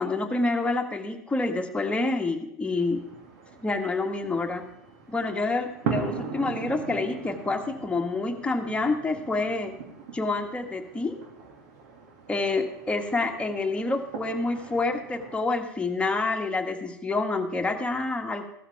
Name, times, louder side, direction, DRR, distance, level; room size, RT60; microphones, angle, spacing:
voice 1, 0.0-3.0 3.6-4.6 5.1-9.7 10.1-11.1 12.3-18.5, left 3 dB, 10° left, 4 dB, 1.7 m, -28 dB
sound 1, 2.8-15.4, right 5 dB, 65° right, 2.4 m, -39 dB
15.5 x 13.0 x 3.6 m, 0.83 s
hypercardioid pair, 85°, 9 cm